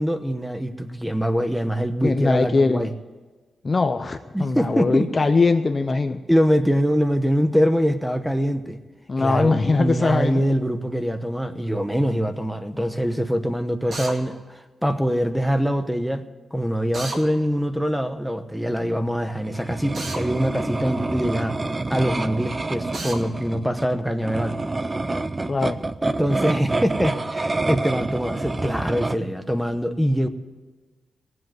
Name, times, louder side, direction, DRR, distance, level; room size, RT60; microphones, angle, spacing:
voice 1, 0.0-2.9 4.3-5.1 6.3-8.8 9.2-16.3 16.5-21.6 21.9-24.6 26.0-30.3, equal, ahead, 9 dB, 0.9 m, -23 dB
voice 2, 2.0-2.9 3.6-6.2 9.1-10.4 25.5-25.8, left 3 dB, 25° left, 8 dB, 0.6 m, -21 dB
Drill, 13.9-14.2 16.9-17.2 19.9-20.2 22.9-23.2, right 2 dB, 40° right, 2.3 m, -31 dB
sound 1, 19.4-29.2, right 2 dB, 20° right, 0.4 m, -28 dB
18.0 x 7.7 x 7.7 m, 1.3 s
wide cardioid pair, 160°, 0 cm